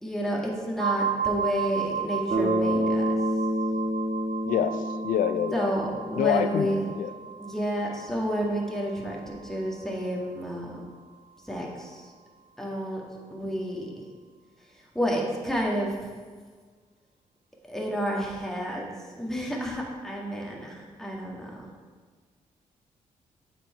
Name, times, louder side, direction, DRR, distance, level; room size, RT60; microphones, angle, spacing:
voice 1, 0.0-3.0 5.5-6.9 7.4-10.8 11.4-12.1 12.6-13.0 13.3-13.9 14.9-16.0 17.7-18.9 19.2-21.5, equal, 5° left, -2 dB, 1.8 m, -30 dB
sound 1, 0.8-10.4, right 8 dB, 75° right, 0.6 m, -34 dB
Bass guitar, 2.3-6.5, equal, 40° right, 1.7 m, -28 dB
voice 2, 4.4-5.7 6.2-6.7 7.0-7.1, left 10 dB, 70° left, 11 dB, 0.4 m, -26 dB
7.6 x 4.6 x 4.5 m, 1.6 s
supercardioid pair, 50°, 15 cm